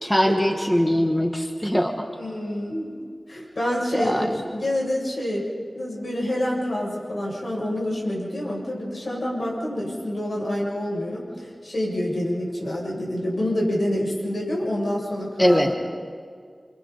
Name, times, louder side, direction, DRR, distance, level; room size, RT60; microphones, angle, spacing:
voice 1, 0.0-1.9 3.9-4.6 15.4-15.7, equal, 10° left, 3 dB, 1.7 m, -22 dB
voice 2, 2.1-2.9 3.3-5.5 5.7-15.7, left 1 dB, 70° left, -3 dB, 7.2 m, -27 dB
29.5 x 25.0 x 4.2 m, 2.1 s
wide cardioid pair, 45°, 0 cm